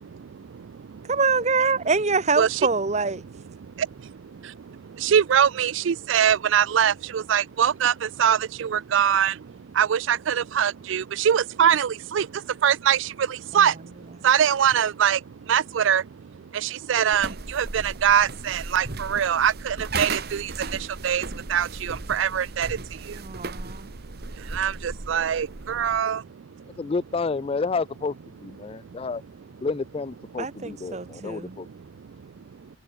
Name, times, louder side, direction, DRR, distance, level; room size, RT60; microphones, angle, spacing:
voice 1, 1.1-3.2 13.5-13.7 23.1-23.9 30.4-31.6, right 4 dB, 35° right, 1.0 m, -25 dB
voice 2, 5.0-7.9 8.2-9.3 9.8-12.3 12.6-13.1 13.5-13.7 14.2-15.2 15.5-16.0 16.6-17.3 17.5-20.5 21.0-21.2 21.5-22.7 24.5-26.2, right 8 dB, 75° right, 0.4 m, -22 dB
sound 1, 17.1-26.0, right 3 dB, 55° right, 2.0 m, -36 dB
voice 3, 26.8-29.2 29.6-31.7, left 4 dB, 30° left, 0.4 m, -30 dB
head